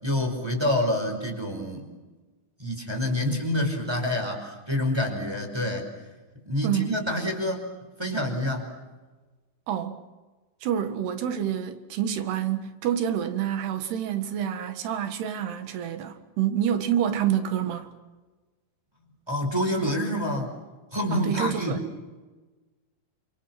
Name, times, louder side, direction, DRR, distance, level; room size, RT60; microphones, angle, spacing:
voice 1, 0.0-1.9 2.6-5.9 6.4-7.7 8.0-8.8 19.3-20.5 20.9-21.8, left 1 dB, 5° right, 4.8 m, -27 dB
voice 2, 9.7-10.0 10.6-17.9 21.1-21.8, right 9 dB, 85° right, 3.8 m, -27 dB
29.0 x 27.5 x 6.1 m
omnidirectional pair, 4.6 m